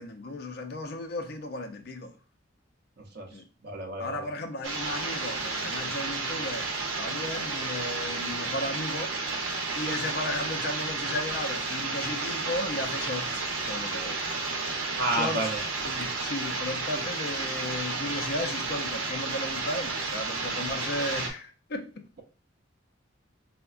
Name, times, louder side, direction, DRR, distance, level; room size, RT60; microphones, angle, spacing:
voice 1, 0.0-2.1 3.3-3.4 4.0-6.7 7.0-9.3 9.8-14.2 15.1-15.5 15.9-22.0, left 1 dB, 50° left, 0.5 m, -35 dB
voice 2, 3.0-3.3 3.6-4.3 14.9-15.6, right 1 dB, 55° right, 0.6 m, -30 dB
sound 1, 4.6-21.3, right 3 dB, 90° right, 0.7 m, -32 dB
4.4 x 2.1 x 2.4 m
head